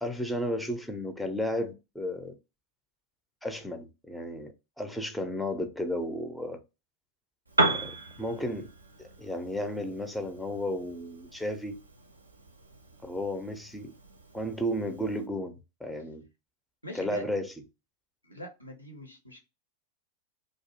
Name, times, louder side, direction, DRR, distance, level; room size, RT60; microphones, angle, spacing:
voice 1, 0.0-2.3 3.4-6.6 7.6-8.7 9.0-11.8 13.0-13.9 14.3-16.3 16.9-17.5, equal, 5° left, 0.4 m, -33 dB
Piano, 7.5-15.3, right 2 dB, 80° right, 0.4 m, -35 dB
voice 2, 16.8-17.3 18.2-19.4, left 1 dB, 85° left, 0.6 m, -42 dB
2.4 x 2.0 x 2.6 m
figure-of-eight pair, 90°, 0 cm